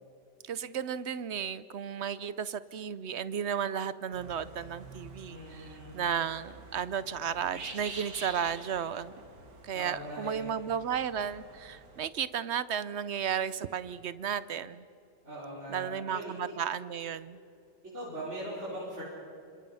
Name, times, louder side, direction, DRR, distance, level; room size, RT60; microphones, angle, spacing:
voice 1, 0.5-5.6 5.9-9.1 9.6-14.8 15.7-17.4, right 8 dB, 60° right, 15 dB, 0.7 m, -34 dB
sound 1, 4.1-12.1, right 3 dB, 75° right, 3.0 m, -48 dB
voice 2, 5.3-6.0 9.7-10.5 15.2-16.5 17.9-19.0, right 1 dB, 40° right, -7 dB, 5.4 m, -40 dB
27.5 x 26.0 x 5.7 m, 2.6 s
omnidirectional pair, 1.8 m